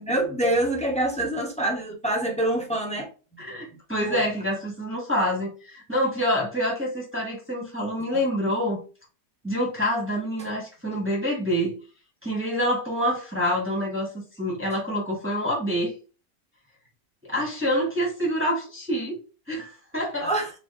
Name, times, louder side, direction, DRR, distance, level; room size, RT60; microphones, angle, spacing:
voice 1, 0.0-3.1 4.1-4.2 8.1-8.2 20.2-20.5, right 1 dB, 10° left, 0.5 m, -25 dB
voice 2, 3.4-8.8 9.4-11.7 12.2-15.9 17.2-19.2 19.5-20.3, equal, 10° right, 1.4 m, -27 dB
4.8 x 3.4 x 2.6 m
omnidirectional pair, 1.8 m